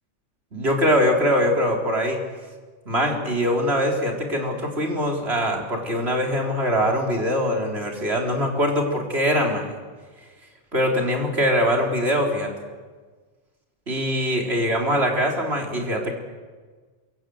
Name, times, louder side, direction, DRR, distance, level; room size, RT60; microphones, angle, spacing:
voice 1, 0.5-2.2 2.9-9.8 10.7-12.5 13.9-16.1, equal, 60° right, 1 dB, 4.3 m, -22 dB
27.0 x 23.5 x 7.9 m, 1.4 s
omnidirectional pair, 1.2 m